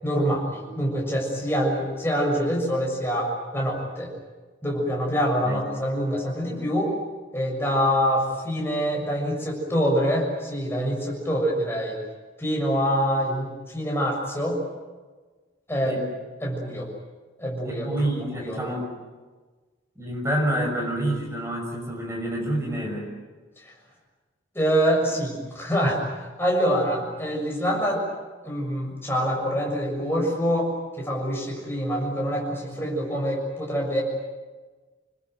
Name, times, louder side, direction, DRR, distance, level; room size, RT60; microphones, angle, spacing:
voice 1, 0.0-4.1 4.6-7.0 7.3-12.0 12.4-14.6 15.7-16.0 16.4-16.9 17.4-18.6 23.6-23.7 24.5-28.0 28.4-34.0, equal, 10° left, -1 dB, 6.9 m, -25 dB
voice 2, 17.6-18.9 20.0-23.1, right 1 dB, 15° right, 0 dB, 6.0 m, -28 dB
27.0 x 21.0 x 9.3 m, 1.3 s
head